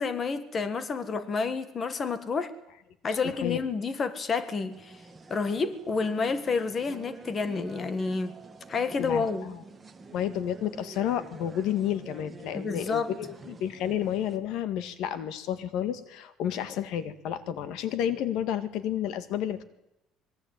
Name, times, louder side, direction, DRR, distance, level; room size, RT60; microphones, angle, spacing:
voice 1, 0.0-2.5 3.0-5.0 5.3-8.3 8.7-9.5 12.5-13.1, left 4 dB, 25° left, 11 dB, 1.7 m, -29 dB
sound 1, 4.7-14.4, right 4 dB, 15° right, 1.8 m, -47 dB
voice 2, 9.0-9.6 10.1-19.6, left 10 dB, 65° left, 12 dB, 1.9 m, -31 dB
26.0 x 22.0 x 9.1 m, 0.82 s
cardioid pair, 175°, 0 cm